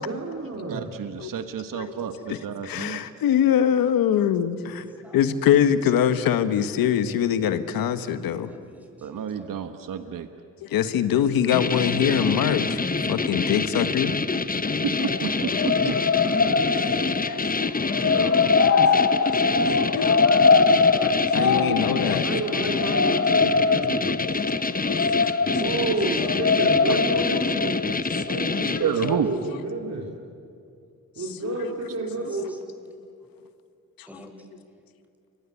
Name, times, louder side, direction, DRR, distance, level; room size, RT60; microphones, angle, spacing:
voice 1, 0.0-0.9 21.3-22.0 22.2-24.2 25.4-27.8 28.2-30.1 31.2-32.5, right 3 dB, 50° right, 0 dB, 3.3 m, -30 dB
voice 2, 0.7-3.0 9.0-10.3 14.8-15.9 18.0-18.5 26.9-27.0 28.8-29.3, right 7 dB, 70° right, 9 dB, 1.4 m, -30 dB
voice 3, 2.6-4.9 5.1-8.5 10.1-10.2 10.6-12.8 13.1-14.1 15.6-15.7 16.6-16.7 17.2-17.8 19.2-22.3 24.9-25.5 27.4-28.8 31.2-31.8 34.0-34.1, left 9 dB, 85° left, 11 dB, 1.3 m, -24 dB
voice 4, 7.4-9.6 14.3-15.4 26.3-26.5 32.3-32.9 34.1-34.5, left 1 dB, 5° right, 2 dB, 7.4 m, -48 dB
sound 1, 11.5-29.2, left 4 dB, 25° left, 1.1 m, -27 dB
sound 2, 15.0-28.6 29.0-29.2, left 4 dB, 45° left, 1.7 m, -22 dB
29.5 x 24.0 x 8.3 m, 2.4 s
supercardioid pair, 50°, 34 cm